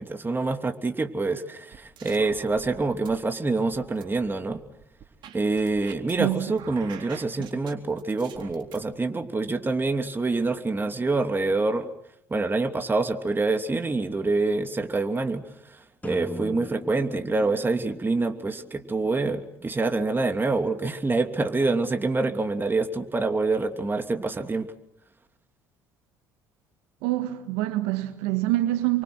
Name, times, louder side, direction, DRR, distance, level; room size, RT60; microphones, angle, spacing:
voice 1, 0.0-4.6 5.3-11.9 12.3-24.7, right 3 dB, 20° right, 3.0 m, -26 dB
sound 1, 1.7-3.2 3.6-6.3 6.6-8.8, right 8 dB, 55° right, 3.9 m, -46 dB
voice 2, 6.2-6.6 27.0-29.0, right 16 dB, 75° right, 1.6 m, -26 dB
sound 2, 16.0-19.8, left 2 dB, 15° left, 2.1 m, -41 dB
28.5 x 24.5 x 6.4 m
hypercardioid pair, 60°, 9 cm